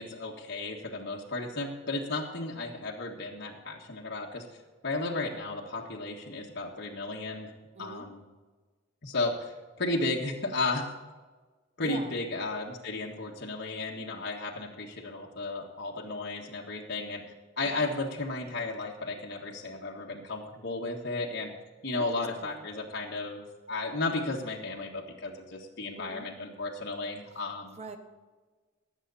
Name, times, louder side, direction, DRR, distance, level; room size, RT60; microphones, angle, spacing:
voice 1, 0.0-4.4 4.8-7.5 7.8-8.2 9.0-10.9 11.8-17.2 17.6-21.5 21.8-27.8, left 2 dB, 60° left, -2 dB, 1.7 m, -34 dB
voice 2, 7.7-8.1 11.8-12.2 17.6-17.9 21.9-22.7 26.0-26.3 27.6-28.0, right 2 dB, 35° right, 7 dB, 1.1 m, -43 dB
19.0 x 7.5 x 4.2 m, 1.3 s
head